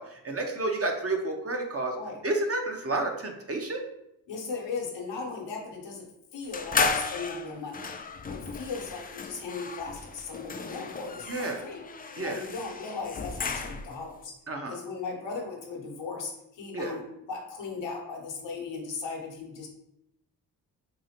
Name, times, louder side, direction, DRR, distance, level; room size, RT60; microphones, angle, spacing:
voice 1, 0.0-2.0 2.2-3.8 11.3-11.6 12.2-12.4 14.5-14.8 16.7-16.9, right 2 dB, 30° right, 2 dB, 0.8 m, -30 dB
voice 2, 4.3-7.9 8.3-11.9 12.1-14.4 14.7-19.7, left 4 dB, 75° left, 0 dB, 1.1 m, -37 dB
sound 1, 6.5-14.1, left 4 dB, 20° left, 0.4 m, -34 dB
4.8 x 2.4 x 2.8 m, 0.81 s
supercardioid pair, 50°, 44 cm